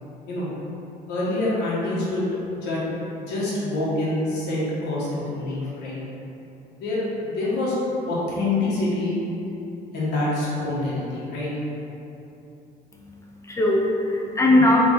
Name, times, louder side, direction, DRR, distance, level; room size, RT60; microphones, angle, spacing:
voice 1, 1.1-2.2 2.5-2.8 3.1-6.0 6.7-7.8 8.1-9.2 9.9-11.5, left 2 dB, 85° left, -7 dB, 1.2 m, -26 dB
voice 2, 12.9-14.8, left 1 dB, 15° left, -2 dB, 0.6 m, -20 dB
3.4 x 3.1 x 3.8 m, 2.9 s
cardioid pair, 110°, 17 cm